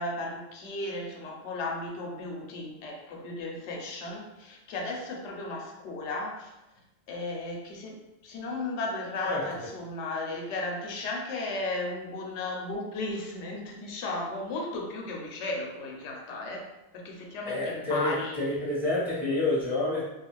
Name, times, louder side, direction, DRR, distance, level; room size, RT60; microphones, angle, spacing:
voice 1, 0.0-6.5 7.1-16.7 16.9-18.6, left 2 dB, 90° left, 0 dB, 0.9 m, -35 dB
voice 2, 17.4-20.0, left 2 dB, ahead, -8 dB, 0.7 m, -28 dB
2.3 x 2.3 x 3.0 m, 0.99 s
omnidirectional pair, 1.1 m